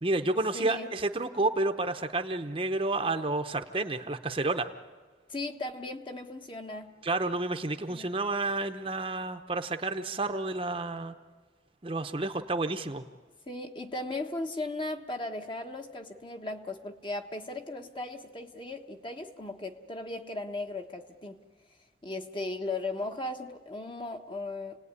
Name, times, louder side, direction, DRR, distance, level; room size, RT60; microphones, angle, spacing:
voice 1, 0.0-4.7 7.0-11.1 11.8-13.0, right 2 dB, 30° right, 7 dB, 0.9 m, -30 dB
voice 2, 0.5-0.9 5.3-6.9 7.9-8.1 13.5-21.4 22.0-24.8, left 2 dB, 25° left, 5 dB, 1.3 m, -37 dB
29.0 x 18.5 x 9.8 m, 1.5 s
head